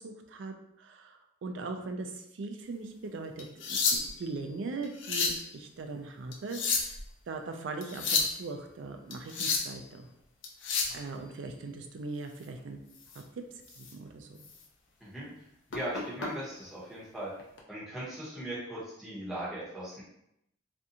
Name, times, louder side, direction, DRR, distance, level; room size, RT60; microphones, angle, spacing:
voice 1, 0.0-7.0 7.3-10.1 10.9-12.8 13.7-14.4, right 3 dB, 70° right, 5 dB, 0.4 m, -40 dB
sound 1, 3.4-4.3 4.8-5.4 6.3-7.0 7.8-8.4 9.1-9.8 10.4-11.0 13.0-13.2 13.7-13.9 14.4-14.5 15.7-16.3 17.4-17.6, left 4 dB, 75° left, 0.5 m, -30 dB
voice 2, 15.0-15.3 15.7-17.3 17.7-20.0, right 1 dB, ahead, -9 dB, 0.9 m, -39 dB
2.5 x 2.3 x 2.7 m, 0.78 s
head